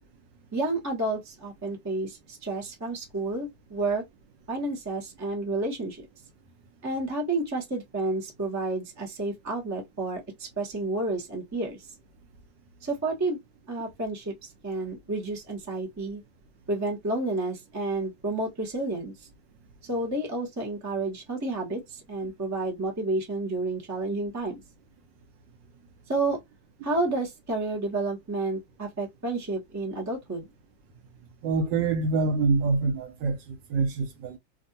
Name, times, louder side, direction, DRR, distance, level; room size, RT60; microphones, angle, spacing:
voice 1, 0.5-4.0 4.5-6.1 6.8-11.9 12.8-13.4 13.7-16.2 16.7-19.3 19.8-24.6 26.1-26.4 26.8-30.5, right 2 dB, 15° right, 0.6 m, -30 dB
voice 2, 31.4-34.4, right 4 dB, 75° right, 1.4 m, -26 dB
3.4 x 2.3 x 2.6 m
omnidirectional pair, 2.1 m